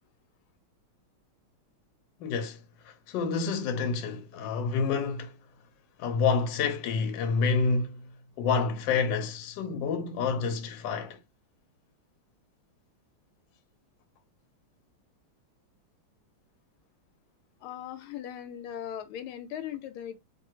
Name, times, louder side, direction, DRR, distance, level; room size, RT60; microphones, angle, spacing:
voice 1, 2.2-2.6 2.8-5.4 6.0-8.1 8.4-11.2, left 5 dB, 70° left, 1.3 m, -28 dB
voice 2, 17.6-20.2, left 10 dB, 85° left, 1.5 m, -39 dB
3.0 x 2.7 x 2.7 m
omnidirectional pair, 2.3 m